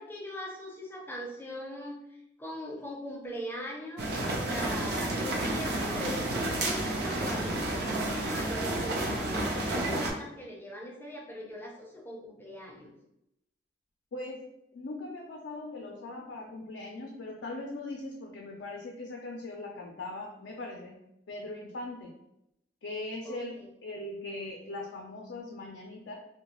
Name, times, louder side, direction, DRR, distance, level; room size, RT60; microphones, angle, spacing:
voice 1, 0.0-12.9 23.2-23.7, equal, 10° left, -2 dB, 0.4 m, -41 dB
sound 1, 4.0-10.1, right 1 dB, 65° right, 0.5 m, -31 dB
voice 2, 14.1-14.5 14.7-21.0 21.3-22.1 22.8-23.5 23.8-26.1, left 2 dB, 80° left, 0 dB, 0.4 m, -40 dB
2.3 x 2.1 x 2.9 m, 0.83 s
head